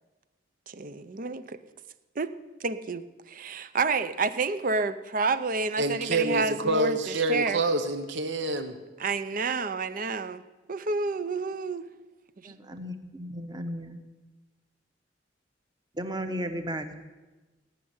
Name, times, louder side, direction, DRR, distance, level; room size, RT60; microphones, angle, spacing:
voice 1, 0.7-1.6 2.2-2.3 2.6-7.0 7.3-7.6 9.0-11.9 12.4-12.5, right 4 dB, 45° right, 13 dB, 0.6 m, -29 dB
voice 2, 5.8-8.7, right 2 dB, 70° right, 8 dB, 1.1 m, -27 dB
voice 3, 12.4-14.0 15.9-17.0, equal, 20° right, 7 dB, 1.1 m, -35 dB
18.0 x 6.5 x 9.6 m, 1.2 s
head